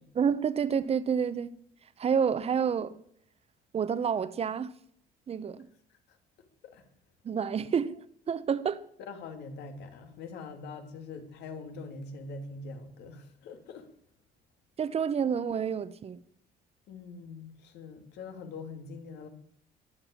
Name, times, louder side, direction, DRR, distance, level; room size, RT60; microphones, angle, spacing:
voice 1, 0.1-1.5 2.0-2.9 3.7-4.7 5.3-5.7 7.2-8.8 14.8-16.2, right 7 dB, 35° right, 1.0 m, -29 dB
voice 2, 9.1-13.9 16.9-19.3, left 4 dB, 80° left, 2.8 m, -43 dB
21.5 x 7.8 x 8.7 m
cardioid pair, 110°, 17 cm